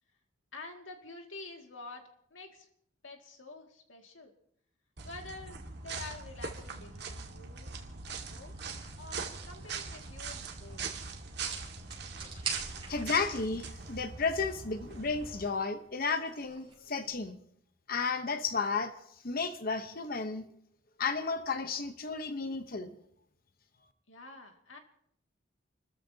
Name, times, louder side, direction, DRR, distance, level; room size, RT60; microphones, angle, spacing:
voice 1, 0.5-2.7 3.0-4.3 5.0-7.7 8.1-8.5 9.0-11.0 24.1-24.8, left 3 dB, 90° left, 2.2 m, -48 dB
sound 1, 5.0-15.5, right 4 dB, 60° right, 1.8 m, -42 dB
sound 2, 6.8-17.1, right 5 dB, 30° right, 5.7 m, -48 dB
voice 2, 12.9-17.4 17.9-18.9 19.2-20.5 21.0-22.9, left 4 dB, 50° left, 0.9 m, -33 dB
29.5 x 14.0 x 2.8 m
head